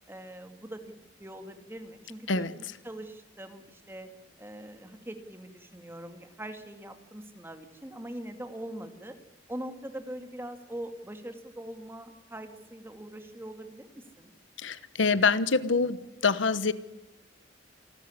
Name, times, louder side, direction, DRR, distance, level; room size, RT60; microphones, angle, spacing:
voice 1, 0.1-0.8 1.2-4.1 4.4-9.2 9.5-14.3, right 1 dB, 10° right, 7 dB, 2.2 m, -42 dB
voice 2, 14.6-16.7, left 4 dB, 80° left, 16 dB, 1.1 m, -25 dB
28.0 x 13.0 x 9.8 m, 0.96 s
head